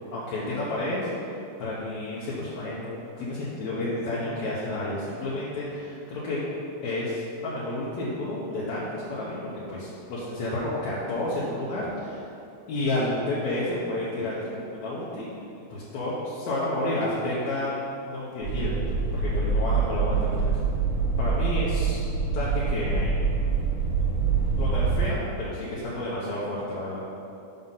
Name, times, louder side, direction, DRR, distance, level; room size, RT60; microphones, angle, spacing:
voice 1, 0.1-1.1 1.6-2.9 3.2-6.4 6.8-12.2 12.7-15.3 15.7-18.8 19.1-20.6 21.2-23.2 24.5-27.1, left 1 dB, 70° left, -7 dB, 2.1 m, -30 dB
sound 1, 18.4-25.1, right 4 dB, 50° right, 1.6 m, -25 dB
5.7 x 5.4 x 5.5 m, 2.8 s
omnidirectional pair, 3.6 m